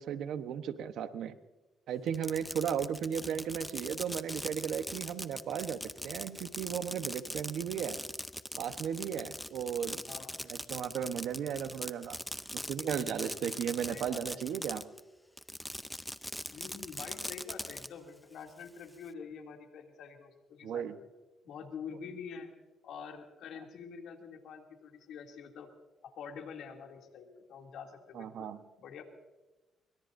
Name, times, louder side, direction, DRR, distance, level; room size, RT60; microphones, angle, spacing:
voice 1, 0.0-1.4 1.9-8.0 8.6-10.0 10.5-12.2 12.5-14.8 20.6-21.0 28.1-28.6, right 8 dB, 75° right, 10 dB, 1.1 m, -35 dB
Fireworks, 2.1-15.0 15.4-17.9, equal, 5° left, 0.6 m, -41 dB
voice 2, 10.1-10.4 13.9-14.4 16.5-21.1 21.4-22.5 22.8-25.7 26.0-28.5 28.8-29.0, left 6 dB, 75° left, 2 dB, 2.8 m, -46 dB
23.5 x 22.5 x 2.7 m, 1.1 s
cardioid pair, 90°, 0 cm